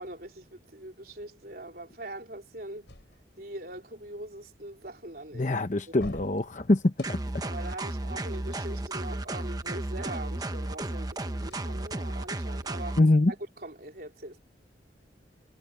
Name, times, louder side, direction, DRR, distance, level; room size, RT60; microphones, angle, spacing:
voice 1, 0.0-2.9 3.4-5.6 7.4-13.0 13.3-14.4, right 1 dB, 55° right, 3.8 m, -42 dB
sound 1, 2.9-3.6 5.9-7.5 11.4-12.4, left 1 dB, 90° left, 4.1 m, -47 dB
voice 2, 5.3-7.2 13.0-13.3, left 2 dB, 45° left, 0.9 m, -24 dB
sound 2, 7.0-13.0, right 1 dB, 20° right, 1.1 m, -34 dB
head